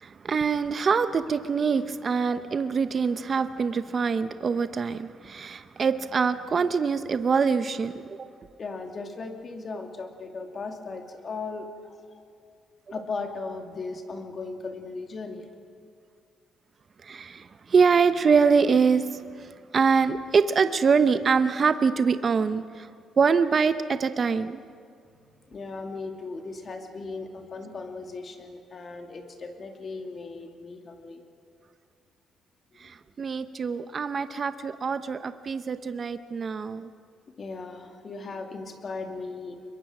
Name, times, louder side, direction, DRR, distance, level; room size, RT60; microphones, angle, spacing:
voice 1, 0.0-8.3 17.0-22.9 23.2-24.6 32.8-36.9, right 5 dB, 40° right, 11 dB, 0.8 m, -24 dB
voice 2, 8.6-12.0 12.9-15.4 25.5-31.2 37.4-39.6, left 3 dB, 40° left, 4 dB, 2.6 m, -37 dB
24.5 x 22.0 x 6.1 m, 2.2 s
cardioid pair, 100°, 0 cm